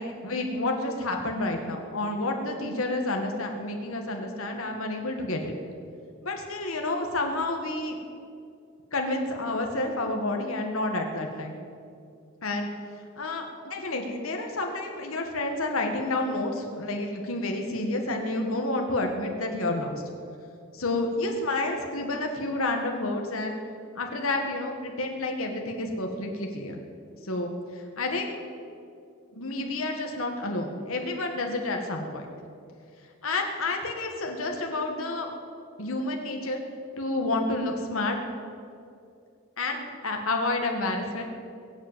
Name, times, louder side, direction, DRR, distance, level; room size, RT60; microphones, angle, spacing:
voice 1, 0.0-5.5 6.2-8.0 8.9-11.6 12.4-12.7 13.2-20.0 20.7-23.6 24.0-26.8 27.2-27.6 28.0-28.4 29.3-32.2 33.2-35.3 35.8-36.6 37.0-38.2 39.6-41.2, left 2 dB, 75° left, 3 dB, 1.8 m, -29 dB
22.0 x 7.9 x 7.5 m, 2.4 s
head